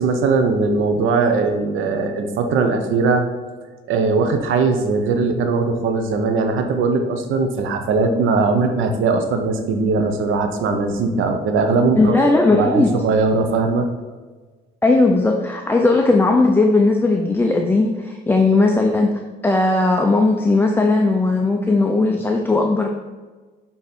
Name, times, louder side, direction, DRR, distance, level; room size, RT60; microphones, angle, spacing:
voice 1, 0.0-3.2 3.9-12.1 12.5-13.9, right 4 dB, 85° right, 6 dB, 0.8 m, -19 dB
voice 2, 12.0-12.9 14.8-22.9, left 2 dB, 10° left, 2 dB, 0.5 m, -17 dB
6.9 x 3.6 x 4.3 m, 1.3 s
cardioid pair, 90°, 20 cm